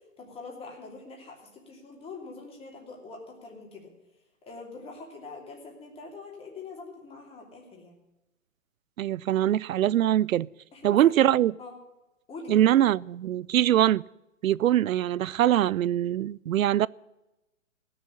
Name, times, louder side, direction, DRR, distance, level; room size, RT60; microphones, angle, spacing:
voice 1, 0.2-3.9 4.4-7.9 10.7-11.3 11.6-11.7 12.3-12.6, left 3 dB, 15° left, 2.9 m, -44 dB
voice 2, 9.0-10.5 10.8-11.5 12.5-14.0 14.4-16.9, right 12 dB, 85° right, 0.5 m, -23 dB
16.5 x 6.8 x 9.9 m
hypercardioid pair, 140°, 39 cm